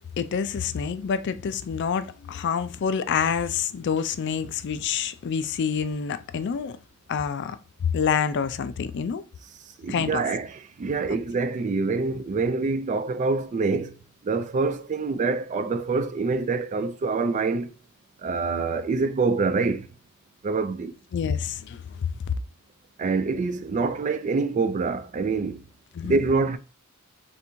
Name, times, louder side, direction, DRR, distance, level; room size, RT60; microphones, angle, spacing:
voice 1, 0.2-6.8 7.1-7.6 7.8-9.2 9.9-10.2 21.1-22.1 25.9-26.2, left 7 dB, 55° left, 0.4 m, -27 dB
voice 2, 9.8-13.9 14.2-17.7 18.2-19.9 20.4-20.9 23.0-25.6 26.0-26.6, right 4 dB, 35° right, 0.3 m, -26 dB
3.4 x 2.6 x 4.3 m
head